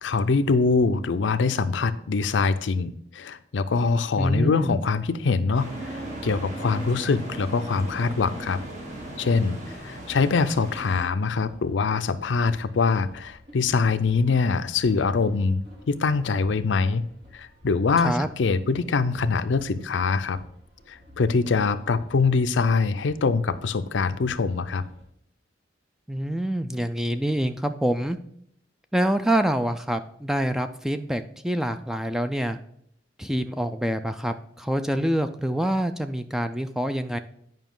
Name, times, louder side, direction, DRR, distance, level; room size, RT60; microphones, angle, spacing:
voice 1, 0.0-8.6 9.2-17.0 17.3-20.4 20.9-24.8, left 4 dB, 85° left, 13 dB, 0.5 m, -24 dB
voice 2, 4.2-4.8 18.0-18.3 26.1-28.2 28.9-32.6 33.2-37.2, right 1 dB, 5° right, 8 dB, 0.3 m, -26 dB
sound 1, 5.5-11.0, right 1 dB, 40° right, 1.5 m, -37 dB
sound 2, 7.8-25.0, left 1 dB, 65° right, 2.5 m, -50 dB
9.2 x 5.3 x 3.7 m, 0.69 s
head